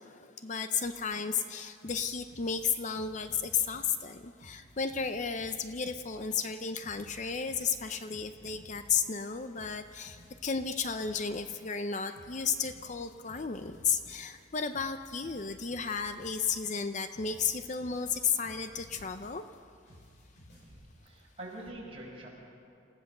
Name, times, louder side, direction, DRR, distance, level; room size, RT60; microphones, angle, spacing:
voice 1, 0.0-19.4, left 6 dB, 40° left, 9 dB, 0.6 m, -33 dB
sound 1, 0.8-1.5 1.8-4.1 4.4-9.3 9.5-11.8 12.1-14.4 14.7-19.6 19.9-20.7, equal, 65° left, 6.1 m, -55 dB
voice 2, 20.6-22.3, right 1 dB, 30° right, -4 dB, 5.6 m, -45 dB
27.5 x 16.0 x 6.7 m, 2.5 s
head